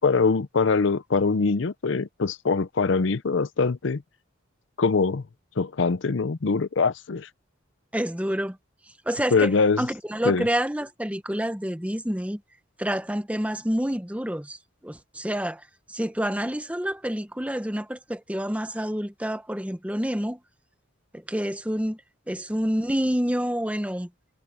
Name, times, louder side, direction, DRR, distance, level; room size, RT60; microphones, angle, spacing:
voice 1, 0.0-4.0 4.8-5.2 5.6-7.3 9.3-9.9 10.2-10.5, left 4 dB, 65° left, 0.6 m, -23 dB
voice 2, 7.9-8.6 9.1-9.5 9.8-12.4 12.8-14.6 14.8-15.6 15.9-20.4 21.1-22.0 22.3-24.1, equal, 5° right, 1.0 m, -28 dB
head